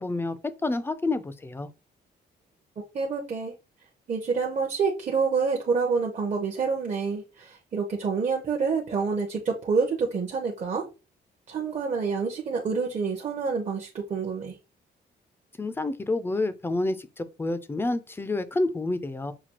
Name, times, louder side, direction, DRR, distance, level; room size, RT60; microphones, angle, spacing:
voice 1, 0.0-1.7 15.6-19.3, left 2 dB, 15° left, 0.4 m, -29 dB
voice 2, 2.9-3.5 4.1-10.8 11.5-14.6, right 5 dB, 40° right, 0.7 m, -27 dB
5.8 x 2.3 x 2.9 m
cardioid pair, 115°, 18 cm